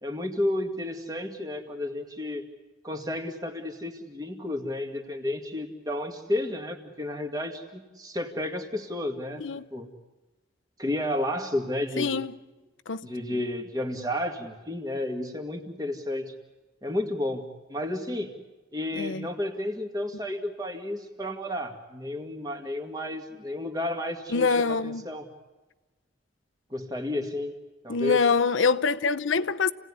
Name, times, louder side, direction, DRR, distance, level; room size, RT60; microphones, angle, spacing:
voice 1, 0.0-2.4 2.8-9.4 9.7-9.9 10.8-12.2 13.0-16.3 16.8-17.4 17.7-18.3 18.7-25.3 26.7-27.5 27.8-28.2, left 1 dB, 20° right, 2.1 m, -32 dB
voice 2, 12.0-12.3 12.9-13.1 19.0-19.3 24.3-25.0 27.9-29.7, left 5 dB, 90° left, 0.8 m, -25 dB
29.0 x 18.0 x 9.8 m
head